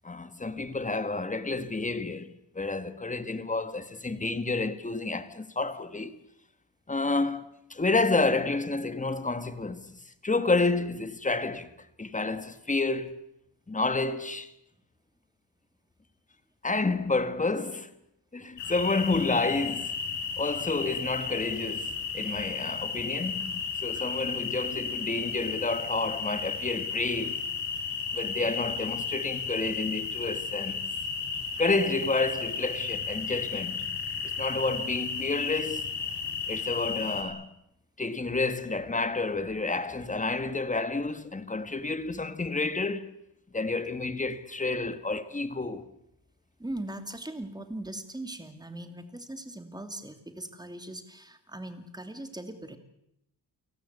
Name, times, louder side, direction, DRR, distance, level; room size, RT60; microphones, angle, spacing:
voice 1, 0.0-6.2 6.9-9.9 10.2-11.7 12.0-13.2 13.7-14.5 16.6-17.9 18.3-19.9 20.4-27.4 28.1-30.8 31.6-33.9 34.4-35.9 36.5-37.5 38.0-43.2 43.5-45.9, left 3 dB, 20° left, 1.7 m, -30 dB
sound 1, 18.6-37.2, left 5 dB, 85° left, 5.7 m, -34 dB
voice 2, 36.2-36.8 42.2-42.3 46.6-52.8, right 1 dB, 10° right, 2.7 m, -40 dB
30.0 x 18.5 x 8.2 m
wide cardioid pair, 135°, 41 cm